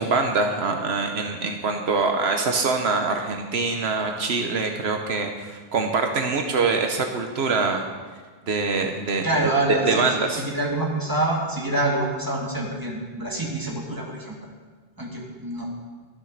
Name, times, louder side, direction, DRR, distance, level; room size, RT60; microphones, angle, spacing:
voice 1, 0.0-7.8 8.5-9.3 9.7-10.4, right 4 dB, 75° right, 4 dB, 1.2 m, -24 dB
voice 2, 9.2-14.3 15.0-15.7, right 2 dB, 20° right, -2 dB, 2.1 m, -26 dB
12.5 x 7.2 x 6.6 m, 1.4 s
omnidirectional pair, 1.1 m